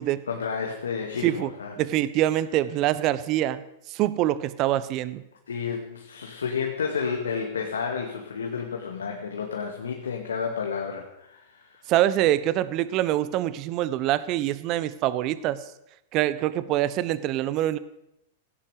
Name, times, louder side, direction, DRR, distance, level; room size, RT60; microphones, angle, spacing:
voice 1, 0.3-1.7 5.5-11.9, left 6 dB, 75° left, 2 dB, 2.1 m, -31 dB
voice 2, 1.8-3.6 3.9-5.2 11.9-15.6 16.1-17.8, right 13 dB, 40° right, 16 dB, 1.1 m, -25 dB
17.0 x 16.5 x 5.1 m, 0.84 s
figure-of-eight pair, 100°, 0 cm